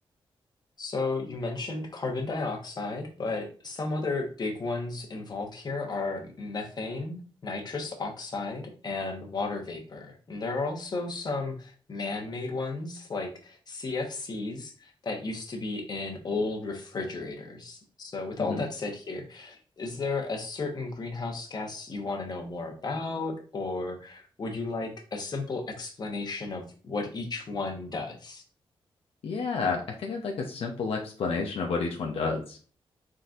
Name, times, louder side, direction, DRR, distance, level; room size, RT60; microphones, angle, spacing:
voice 1, 0.8-28.4, left 3 dB, 45° left, 2 dB, 1.1 m, -34 dB
voice 2, 29.2-32.6, left 4 dB, 80° left, 0 dB, 0.6 m, -30 dB
4.2 x 3.8 x 2.5 m, 0.39 s
cardioid pair, 95°, 10 cm